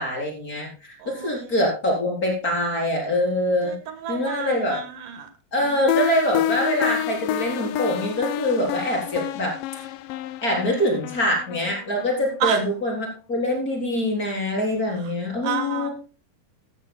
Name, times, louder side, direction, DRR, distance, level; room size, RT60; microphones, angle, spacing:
voice 1, 0.0-3.7 4.1-4.8 5.5-9.5 10.4-15.9, left 1 dB, 25° left, 0 dB, 4.3 m, -24 dB
voice 2, 1.0-1.6 3.6-5.3 5.6-5.9 12.4-12.6 15.4-15.9, right 8 dB, 75° right, 9 dB, 3.0 m, -30 dB
sound 1, 5.9-12.7, left 12 dB, 85° left, 2.3 m, -29 dB
14.5 x 14.0 x 2.2 m, 0.32 s
omnidirectional pair, 3.8 m